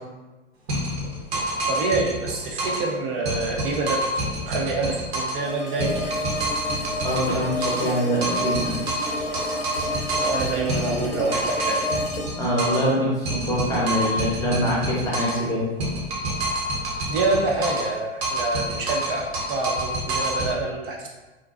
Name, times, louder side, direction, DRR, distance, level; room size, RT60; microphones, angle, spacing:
sound 1, 0.7-2.9 3.3-5.5 5.8-8.0 8.2-12.9 13.3-15.5 15.8-17.9 18.2-20.5, right 1 dB, 70° right, 0.9 m, -27 dB
voice 1, 1.7-4.0 4.4-6.0 10.2-11.8 17.1-21.1, right 3 dB, 55° right, -1 dB, 0.5 m, -26 dB
sound 2, 5.4-14.4, left 1 dB, 80° left, 0.6 m, -32 dB
voice 2, 7.0-8.8 12.4-15.6, equal, 10° left, -6 dB, 0.7 m, -24 dB
2.5 x 2.2 x 2.4 m, 1.2 s
hypercardioid pair, 100°, 32 cm